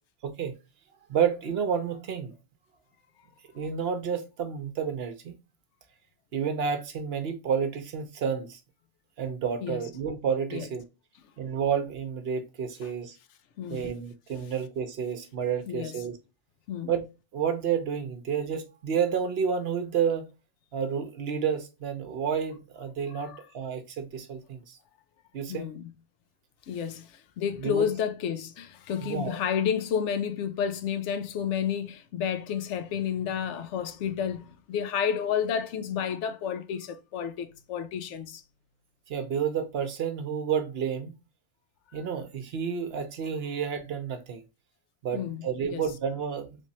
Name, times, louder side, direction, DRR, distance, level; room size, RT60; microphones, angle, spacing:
voice 1, 1.1-2.3 3.5-5.4 6.3-8.6 9.2-10.8 11.4-13.2 13.7-16.2 16.9-17.0 17.3-20.3 20.7-24.8 25.3-25.7 27.6-27.9 29.0-29.4 39.1-41.1 41.9-44.4 45.0-46.6, right 7 dB, 65° right, 0.9 m, -30 dB
voice 2, 13.6-13.9 15.7-15.9 16.7-16.9 23.1-23.4 25.5-25.9 26.7-38.4 45.1-45.8, left 8 dB, 85° left, 0.9 m, -31 dB
3.3 x 3.1 x 2.7 m
omnidirectional pair, 1.2 m